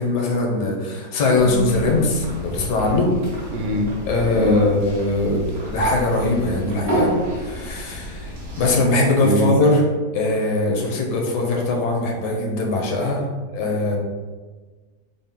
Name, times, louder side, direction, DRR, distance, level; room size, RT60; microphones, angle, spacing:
voice 1, 0.0-3.1 4.1-9.8 10.1-13.2 13.5-14.0, left 2 dB, 80° left, 0 dB, 1.3 m, -21 dB
sound 1, 1.3-8.7, equal, 50° right, 0.9 m, -30 dB
voice 2, 3.5-4.0 4.3-4.7 9.2-9.5, right 1 dB, 80° right, 1 dB, 1.2 m, -23 dB
4.1 x 2.0 x 3.5 m, 1.4 s
omnidirectional pair, 1.8 m